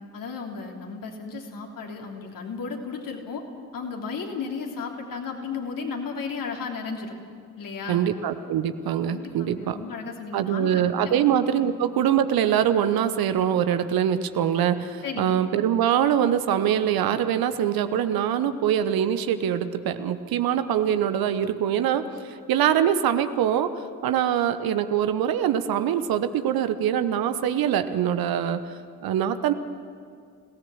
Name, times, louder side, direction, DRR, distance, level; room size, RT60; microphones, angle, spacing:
voice 1, 0.1-3.4 3.7-7.2 7.6-8.0 9.1-11.3 11.6-11.7 15.0-15.3, left 5 dB, 50° left, 1 dB, 3.2 m, -34 dB
voice 2, 7.9-9.8 10.3-28.6 29.0-29.5, right 9 dB, 55° right, 11 dB, 1.2 m, -23 dB
27.0 x 17.5 x 7.2 m, 2.2 s
figure-of-eight pair, 45°, 44 cm